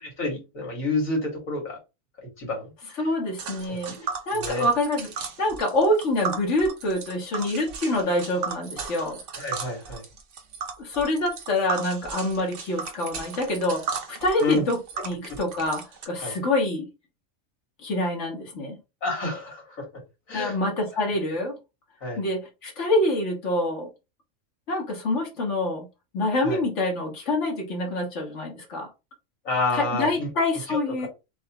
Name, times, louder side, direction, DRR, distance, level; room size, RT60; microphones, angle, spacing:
voice 1, 0.0-1.8 2.2-2.7 3.7-3.8 4.3-4.7 9.4-10.0 14.4-14.6 16.2-16.3 19.0-19.8 20.3-20.6 22.0-22.2 26.4-26.6 29.4-30.3 30.7-30.8, left 3 dB, 80° left, 2.4 m, -29 dB
voice 2, 3.0-4.0 4.3-9.2 10.8-16.9 17.8-18.8 20.3-21.6 22.2-23.9 24.7-25.9 26.1-28.9 29.7-31.1, left 1 dB, 60° left, 1.7 m, -26 dB
Tick, 3.4-16.1, right 5 dB, 65° right, 1.1 m, -36 dB
6.2 x 2.3 x 2.9 m
omnidirectional pair, 1.4 m